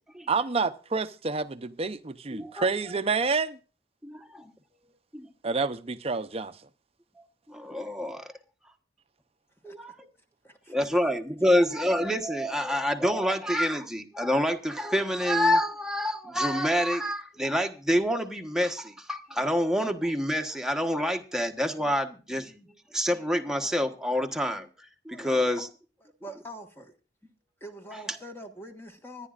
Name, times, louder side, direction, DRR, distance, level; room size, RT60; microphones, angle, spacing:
voice 1, 0.3-3.6 5.4-6.6, right 4 dB, 35° right, 0.7 m, -28 dB
voice 2, 2.3-2.6 4.0-4.5 5.1-5.3 7.5-8.3 9.6-10.1 10.7-22.7 22.9-24.7 25.0-25.7, equal, 5° right, 1.2 m, -27 dB
voice 3, 10.4-11.0 25.1-25.6 26.0-26.9 27.6-29.3, equal, 15° left, 1.5 m, -45 dB
25.0 x 10.5 x 2.5 m
head